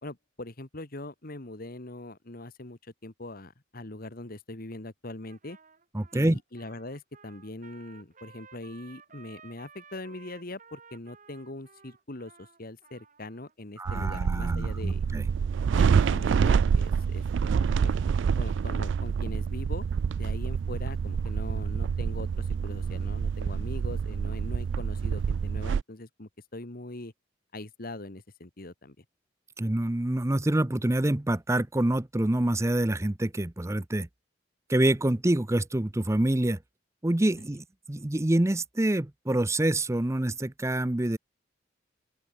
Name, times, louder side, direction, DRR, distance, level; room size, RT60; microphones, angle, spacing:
voice 1, 0.0-5.6 6.1-15.0 15.8-18.0 18.4-19.9 20.2-27.1 27.5-29.0, left 2 dB, 50° left, 1.9 m, -41 dB
Trumpet, 5.2-13.5, right 6 dB, 40° right, 2.9 m, -55 dB
voice 2, 5.9-6.4 13.8-15.3 15.7-15.8 29.6-34.1 34.7-36.6 37.0-41.2, right 1 dB, 15° right, 0.6 m, -26 dB
sound 1, 13.9-25.8, right 6 dB, 65° right, 0.3 m, -27 dB
open air
head